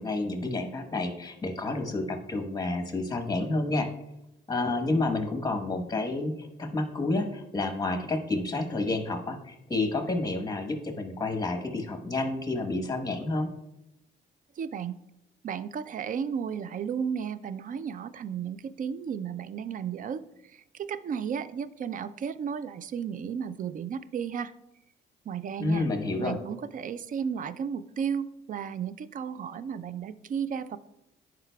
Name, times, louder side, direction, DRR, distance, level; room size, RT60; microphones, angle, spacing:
voice 1, 0.0-3.9 4.5-13.5 25.6-26.4, left 2 dB, 20° left, 5 dB, 1.1 m, -29 dB
voice 2, 14.6-15.0 15.4-24.5 25.3-25.9 26.2-30.8, right 7 dB, 45° right, 15 dB, 0.4 m, -34 dB
10.5 x 4.8 x 2.3 m, 0.86 s
cardioid pair, 90°, 20 cm